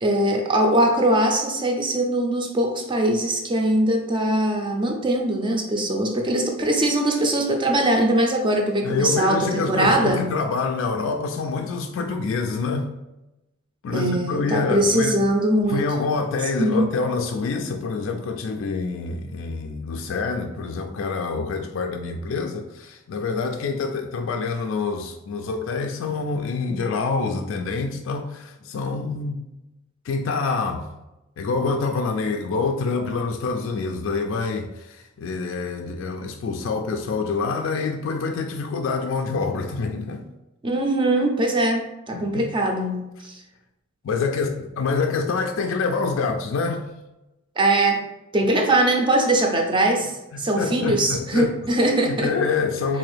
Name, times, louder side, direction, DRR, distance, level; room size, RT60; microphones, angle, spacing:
voice 1, 0.0-10.3 13.9-15.8 16.6-16.9 40.6-43.4 47.6-48.1 48.3-52.3, right 1 dB, 25° right, 2 dB, 0.5 m, -21 dB
voice 2, 8.8-12.9 13.8-15.2 15.7-29.5 30.0-30.9 31.4-40.2 42.1-42.5 44.0-46.9 50.3-51.5 52.0-53.0, left 4 dB, 65° left, 4 dB, 0.3 m, -26 dB
3.8 x 2.6 x 3.2 m, 0.96 s
head